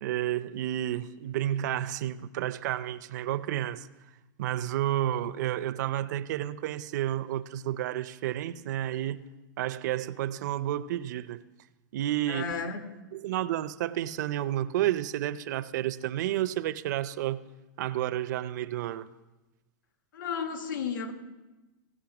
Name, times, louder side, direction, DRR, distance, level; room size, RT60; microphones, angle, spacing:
voice 1, 0.0-3.9 4.4-9.3 9.6-11.4 11.9-12.5 13.1-17.4 17.8-19.1, right 12 dB, 60° right, 0.5 m, -31 dB
voice 2, 12.3-12.8 20.1-21.1, left 6 dB, 80° left, 1.4 m, -33 dB
16.5 x 5.5 x 5.9 m
supercardioid pair, 155°, 11 cm